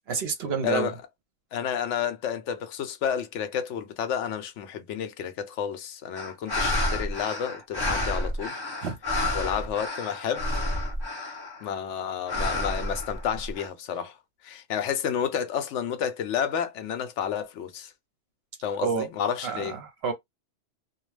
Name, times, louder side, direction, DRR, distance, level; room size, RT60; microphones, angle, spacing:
voice 1, 0.1-0.9 8.8-9.0 18.8-19.1 19.4-20.1, right 6 dB, 60° right, 0.8 m, -29 dB
voice 2, 0.6-1.0 1.5-8.6 9.3-10.5 11.6-14.2 14.4-17.9 18.6-19.8, left 8 dB, 75° left, 0.9 m, -30 dB
sound 1, 6.2-11.7 12.3-13.7, left 1 dB, 25° left, 0.5 m, -30 dB
2.3 x 2.3 x 3.1 m
omnidirectional pair, 1.3 m